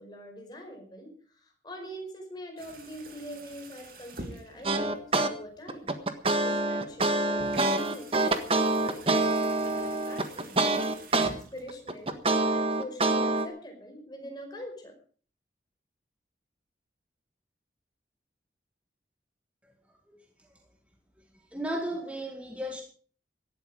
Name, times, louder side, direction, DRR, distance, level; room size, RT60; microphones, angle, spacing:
voice 1, 0.0-5.0 5.3-5.9 6.4-15.0, equal, 25° left, 5.2 m, -44 dB
sound 1, 2.6-12.6, right 2 dB, 50° right, 3.2 m, -48 dB
sound 2, 4.6-5.3 5.7-11.3 11.7-13.5, right 2 dB, 30° right, 1.5 m, -26 dB
voice 2, 21.5-22.8, right 1 dB, 5° right, 2.0 m, -34 dB
17.5 x 13.0 x 5.0 m
head